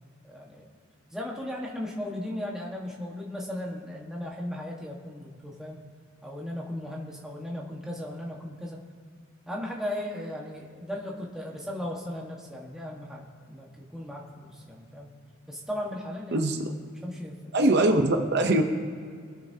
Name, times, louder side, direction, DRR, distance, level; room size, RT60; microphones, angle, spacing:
voice 1, 0.2-0.7 1.1-5.8 6.2-8.8 9.5-15.1 15.5-16.5 17.0-17.6, left 1 dB, 5° right, -3 dB, 1.4 m, -36 dB
voice 2, 16.3-16.7 17.5-18.6, right 1 dB, 50° right, 4 dB, 0.7 m, -22 dB
23.5 x 8.3 x 2.8 m, 2.2 s
head